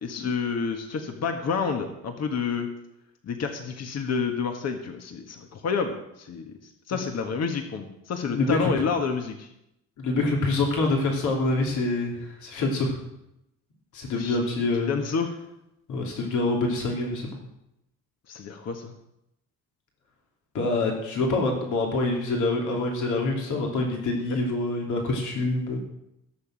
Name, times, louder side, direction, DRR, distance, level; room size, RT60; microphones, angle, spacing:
voice 1, 0.0-2.7 3.2-9.5 14.2-14.4 14.9-15.3 18.3-18.9 24.3-24.4, left 5 dB, 60° left, 5 dB, 1.6 m, -29 dB
voice 2, 8.3-8.7 10.0-13.0 13.9-14.9 15.9-17.4 20.5-25.8, left 2 dB, 75° left, 0 dB, 3.0 m, -26 dB
16.0 x 7.2 x 7.6 m, 0.84 s
cardioid pair, 90°, 30 cm